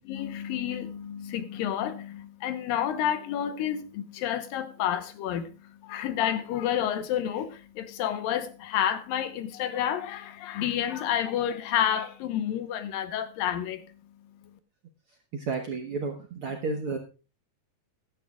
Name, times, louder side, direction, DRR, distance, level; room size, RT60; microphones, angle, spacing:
voice 1, 0.0-13.9 14.4-14.5, left 10 dB, 80° left, 2.7 m, -30 dB
voice 2, 15.3-17.0, right 4 dB, 60° right, 1.4 m, -32 dB
16.0 x 11.5 x 2.4 m
omnidirectional pair, 4.0 m